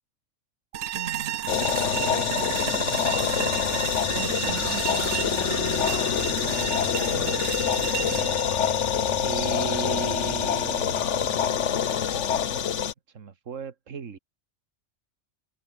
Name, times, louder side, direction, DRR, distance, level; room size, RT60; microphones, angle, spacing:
sound 1, 0.7-9.8, right 11 dB, 65° right, 0.8 m, -33 dB
voice 1, 0.9-8.9 9.2-12.7 13.1-14.2, right 6 dB, 90° right, 1.9 m, -38 dB
sound 2, 1.5-12.9, left 8 dB, 75° left, 1.3 m, -26 dB
sound 3, 3.2-10.5, equal, ahead, 1.1 m, -44 dB
omnidirectional pair, 1.3 m